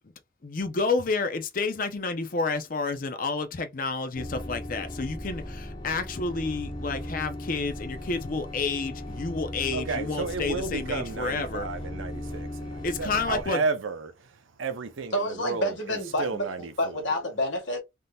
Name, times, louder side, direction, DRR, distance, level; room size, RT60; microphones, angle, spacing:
voice 1, 0.4-11.7 12.8-13.6, left 3 dB, 45° left, 0.5 m, -30 dB
sound 1, 4.1-13.4, left 1 dB, 25° left, 1.1 m, -37 dB
voice 2, 9.7-14.1 14.6-16.7, right 4 dB, 85° right, 0.6 m, -32 dB
voice 3, 15.1-17.8, left 1 dB, 75° left, 1.5 m, -29 dB
3.5 x 2.7 x 2.3 m
head